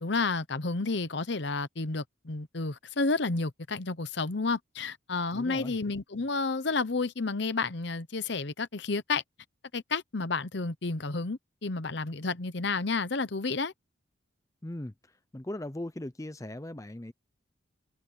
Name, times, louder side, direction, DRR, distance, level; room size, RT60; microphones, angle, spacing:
voice 1, 0.0-9.2 9.7-13.7, left 3 dB, 55° left, 0.9 m, -31 dB
voice 2, 5.3-5.8 14.6-14.9 15.3-17.1, left 1 dB, 15° left, 0.6 m, -38 dB
open air
head